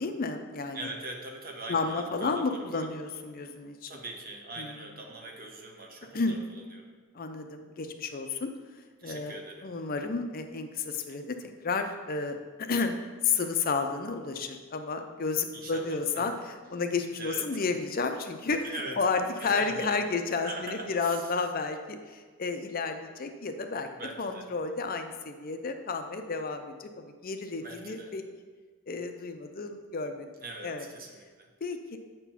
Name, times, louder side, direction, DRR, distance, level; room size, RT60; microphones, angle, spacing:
voice 1, 0.0-0.9 1.7-3.9 4.6-4.8 6.1-6.4 7.1-8.5 9.0-9.4 9.6-11.4 11.6-13.0 13.2-18.6 19.0-23.9 24.2-28.2 28.9-30.3 30.6-30.8 31.6-32.0, left 4 dB, 45° left, 6 dB, 0.5 m, -31 dB
voice 2, 0.7-2.9 3.9-6.9 9.0-9.7 15.5-16.3 17.2-17.5 18.6-20.0 20.4-21.3 23.9-24.5 27.6-28.1 30.4-31.5, right 2 dB, 45° right, 2 dB, 1.1 m, -42 dB
8.0 x 4.5 x 5.7 m, 1.5 s
head